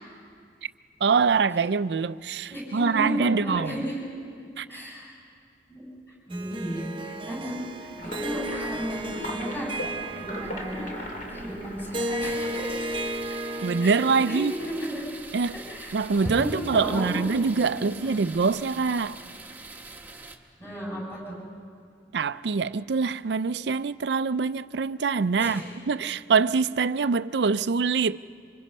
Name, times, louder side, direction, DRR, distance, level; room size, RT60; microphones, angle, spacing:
voice 1, 1.0-3.8 4.6-4.7 13.6-14.5 15.3-15.6 15.9-19.2 22.1-25.6 25.9-28.2, right 5 dB, 70° right, 0.5 m, -24 dB
voice 2, 2.5-3.9 4.7-5.1 5.7-5.8 6.3-7.5 7.8-9.7 10.1-12.7 13.8-15.0 15.7-17.2 17.6-18.2 20.6-21.4 25.4-25.6, equal, 15° left, 6.5 m, -34 dB
Harp, 6.3-14.7, right 1 dB, 30° right, 0.7 m, -34 dB
sound 1, 8.0-13.1, left 1 dB, 50° left, 3.3 m, -39 dB
sound 2, 12.2-20.4, right 3 dB, 10° right, 1.2 m, -44 dB
27.0 x 25.5 x 5.5 m
head